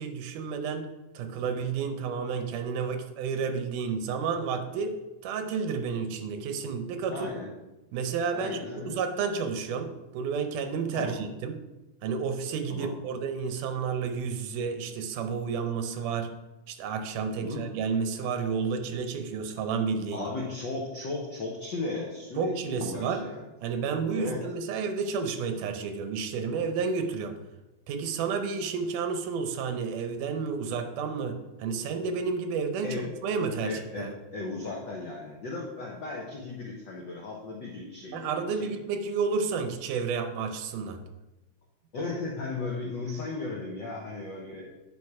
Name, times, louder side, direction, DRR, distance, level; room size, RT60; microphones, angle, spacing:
voice 1, 0.0-5.0 5.2-7.3 7.9-8.6 8.9-11.6 12.0-16.3 16.7-20.3 22.4-23.3 23.6-27.4 27.9-34.1 38.1-41.0, right 5 dB, 85° right, 7 dB, 2.4 m, -31 dB
voice 2, 7.1-7.5 8.3-9.0 10.9-11.2 12.7-12.9 17.4-17.6 20.1-23.4 24.1-24.4 32.8-33.0 33.6-38.7 41.9-44.7, left 3 dB, 75° left, -2 dB, 1.0 m, -36 dB
9.8 x 4.9 x 4.8 m, 1.0 s
omnidirectional pair, 3.6 m